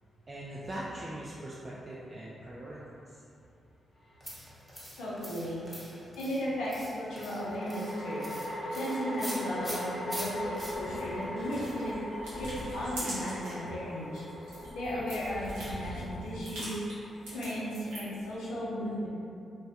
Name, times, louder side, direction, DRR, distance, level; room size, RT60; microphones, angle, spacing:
voice 1, 0.3-2.8 3.1-3.2, right 1 dB, 40° right, -7 dB, 0.3 m, -41 dB
sound 1, 4.1-4.2 7.0-18.4, left 1 dB, 40° left, 0.8 m, -40 dB
sound 2, 4.2-11.9, equal, ahead, 0.8 m, -45 dB
voice 2, 5.0-8.3 8.7-12.0 12.4-14.2 14.7-16.8 17.3-19.1, equal, 80° left, -7 dB, 0.5 m, -35 dB
sound 3, 10.6-13.7 14.0-18.2, equal, 90° right, 0.6 m, -42 dB
2.1 x 2.1 x 2.7 m, 2.6 s
hypercardioid pair, 40°, 0 cm